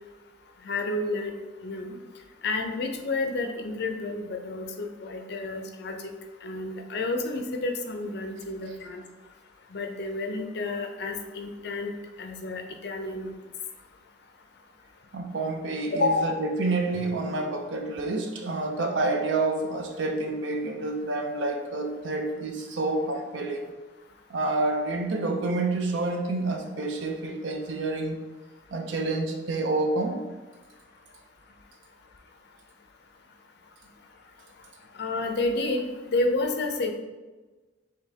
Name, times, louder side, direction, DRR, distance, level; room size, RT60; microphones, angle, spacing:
voice 1, 0.6-1.3 1.6-1.9 2.4-6.0 6.4-9.0 9.7-11.9 12.2-13.3 15.9-16.3 35.0-35.8 36.1-36.9, left 2 dB, 65° left, 5 dB, 0.5 m, -30 dB
voice 2, 15.1-23.7 24.3-28.2 28.7-30.2, right 2 dB, 85° right, 4 dB, 0.6 m, -28 dB
5.0 x 3.4 x 2.8 m, 1.2 s
head